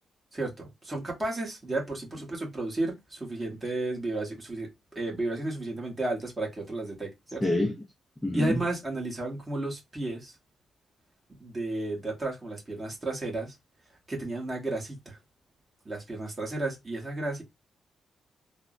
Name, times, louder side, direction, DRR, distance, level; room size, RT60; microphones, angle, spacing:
voice 1, 0.3-4.7 4.9-7.4 8.3-10.4 11.4-13.5 14.1-15.2 15.8-17.4, right 2 dB, 20° right, 1.1 m, -33 dB
voice 2, 7.4-7.7 8.2-8.6, left 1 dB, 5° left, 0.4 m, -26 dB
3.3 x 2.0 x 2.4 m
cardioid pair, 150°, 0 cm